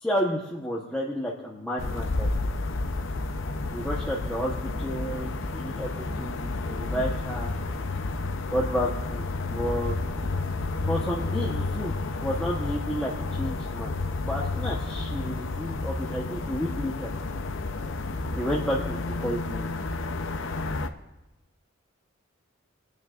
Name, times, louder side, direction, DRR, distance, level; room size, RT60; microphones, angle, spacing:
voice 1, 0.0-2.3 3.7-7.5 8.5-9.9 10.9-11.9 12.2-13.9 14.2-17.1 18.4-19.7, equal, 5° left, -5 dB, 1.0 m, -31 dB
sound 1, 1.8-20.9, left 3 dB, 65° left, 0.7 m, -31 dB
27.5 x 9.2 x 2.5 m, 1.0 s
head